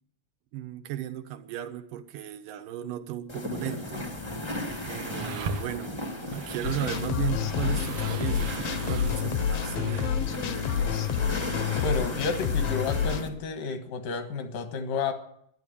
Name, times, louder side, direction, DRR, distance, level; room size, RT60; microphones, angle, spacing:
voice 1, 0.5-4.1 4.8-10.2, right 12 dB, 85° right, 9 dB, 2.6 m, -36 dB
sound 1, 3.3-13.3, left 1 dB, 30° left, 0.5 m, -36 dB
sound 2, 4.0-10.3, right 5 dB, 70° right, 1.5 m, -40 dB
sound 3, 6.6-13.2, left 8 dB, 70° left, 1.6 m, -29 dB
voice 2, 11.8-15.1, left 4 dB, 85° left, 7 dB, 3.1 m, -31 dB
12.0 x 10.5 x 8.5 m, 0.71 s
omnidirectional pair, 3.7 m